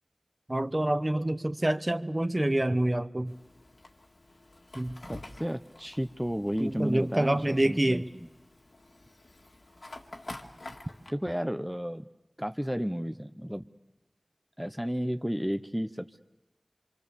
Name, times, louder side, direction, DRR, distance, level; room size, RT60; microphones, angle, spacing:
voice 1, 0.5-3.3 4.7-5.0 6.6-8.1, right 1 dB, 30° right, 1.0 m, -27 dB
Fire, 3.3-11.1, left 2 dB, 70° left, 2.1 m, -48 dB
voice 2, 5.1-8.0 11.1-12.0 12.4-13.6 14.6-16.2, equal, 5° right, 0.8 m, -32 dB
26.5 x 25.0 x 7.0 m
wide cardioid pair, 40°, 0 cm